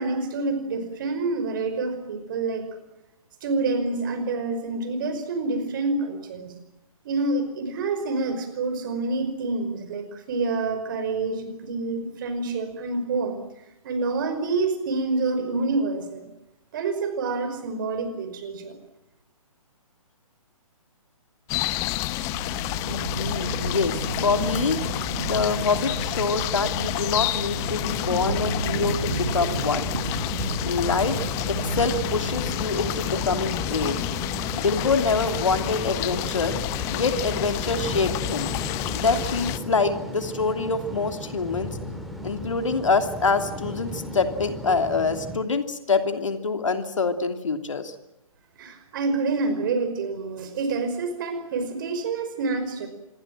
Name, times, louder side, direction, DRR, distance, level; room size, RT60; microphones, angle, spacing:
voice 1, 0.0-2.6 3.4-6.5 7.1-13.4 13.8-16.3 16.7-18.7 48.6-52.9, right 3 dB, 35° right, 9 dB, 5.2 m, -27 dB
sound 1, 21.5-39.6, left 16 dB, 15° left, 0.8 m, -30 dB
Thunder, 22.1-39.5, right 3 dB, 60° right, 5.3 m, -34 dB
voice 2, 22.9-24.8 25.3-29.9 30.6-34.0 34.6-36.6 36.9-38.5 38.9-41.8 42.2-47.9, left 4 dB, 60° left, 7 dB, 2.8 m, -25 dB
sound 2, 27.5-45.4, equal, ahead, 3.0 m, -36 dB
27.0 x 21.5 x 7.6 m, 0.91 s
figure-of-eight pair, 135°, 18 cm